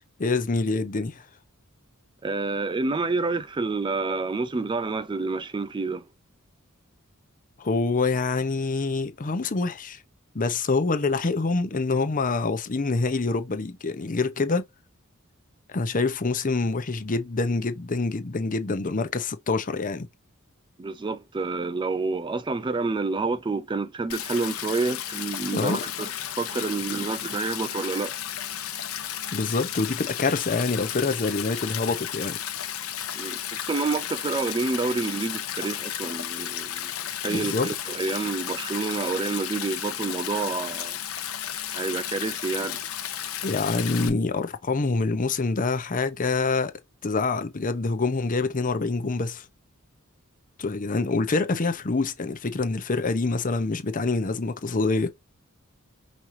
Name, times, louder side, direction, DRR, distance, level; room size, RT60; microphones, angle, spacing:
voice 1, 0.2-1.2 7.6-10.0 10.3-14.6 15.7-20.1 25.5-25.8 29.3-32.4 37.3-37.7 43.4-46.7 47.0-49.5 50.6-55.1, left 3 dB, 40° left, 0.7 m, -26 dB
voice 2, 2.2-6.1 20.8-26.1 26.4-28.2 33.2-36.9 37.2-41.0 41.7-42.8, right 3 dB, 20° right, 0.4 m, -28 dB
Stream, 24.1-44.1, left 10 dB, 80° left, 0.9 m, -33 dB
5.3 x 3.1 x 2.6 m
head